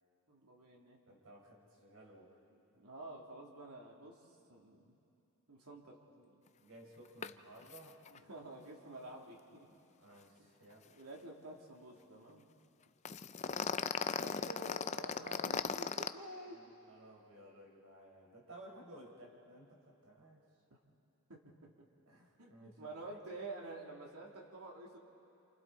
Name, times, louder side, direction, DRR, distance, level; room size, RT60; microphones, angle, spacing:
voice 1, 0.3-1.0 2.5-4.2 4.5-4.9 5.5-6.3 8.1-9.7 10.4-10.5 10.9-12.5 15.1-16.6 21.3-21.7 22.4-25.0, right 2 dB, 85° right, -1 dB, 3.1 m, -50 dB
voice 2, 1.1-2.4 6.6-8.0 10.0-10.9 13.4-13.6 14.1-15.7 16.5-20.4 22.1-23.2, right 1 dB, 70° right, -2 dB, 4.8 m, -55 dB
sound 1, 7.2-7.3 7.6-7.8 8.1-8.2 13.1-16.1, left 6 dB, 30° left, 0.4 m, -37 dB
29.0 x 28.0 x 4.1 m, 2.7 s
head